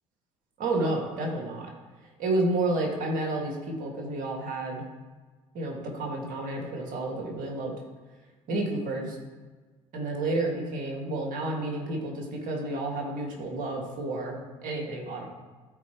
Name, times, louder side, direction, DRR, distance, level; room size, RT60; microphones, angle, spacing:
voice 1, 0.6-1.7 2.0-4.8 5.5-7.7 8.5-9.2 9.9-15.3, right 2 dB, 60° right, 0 dB, 2.2 m, -30 dB
13.0 x 4.5 x 3.1 m, 1.3 s
hypercardioid pair, 55°, 16 cm